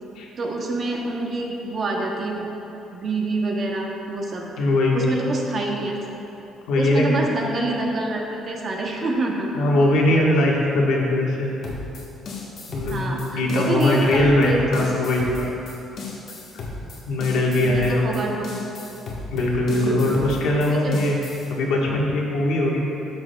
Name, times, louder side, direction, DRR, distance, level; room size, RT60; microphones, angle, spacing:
voice 1, 0.4-2.5 2.9-4.5 4.9-5.9 6.8-9.5 12.9-14.6 17.5-18.4 19.7-20.1 20.8-20.9, right 2 dB, 35° right, 0 dB, 0.8 m, -26 dB
voice 2, 4.6-5.3 6.7-7.2 9.5-11.5 12.7-15.5 16.5-16.6 17.1-18.1 19.3-21.2 21.5-22.8, left 1 dB, 80° left, -3 dB, 1.3 m, -21 dB
sound 1, 11.6-21.5, left 3 dB, 45° left, 1.2 m, -35 dB
13.0 x 6.1 x 2.2 m, 2.9 s
cardioid pair, 170°, 0 cm